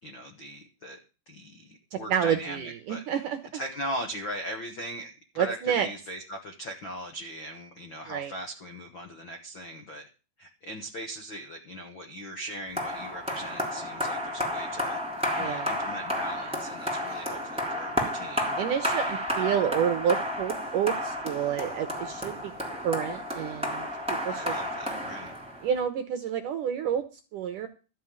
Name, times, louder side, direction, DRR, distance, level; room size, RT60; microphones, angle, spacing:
voice 1, 0.0-1.0 1.3-3.2 3.5-10.0 10.4-15.0 15.3-18.6 24.3-25.3, equal, 70° left, 4 dB, 1.1 m, -39 dB
voice 2, 1.9-3.6 5.4-5.9 8.1-8.3 15.3-15.7 18.6-22.5 22.8-24.5 25.6-27.1 27.3-27.7, right 8 dB, 75° right, 8 dB, 2.0 m, -29 dB
sound 1, 12.8-25.8, equal, ahead, 2.9 m, -32 dB
13.5 x 5.7 x 9.2 m, 0.34 s
omnidirectional pair, 4.9 m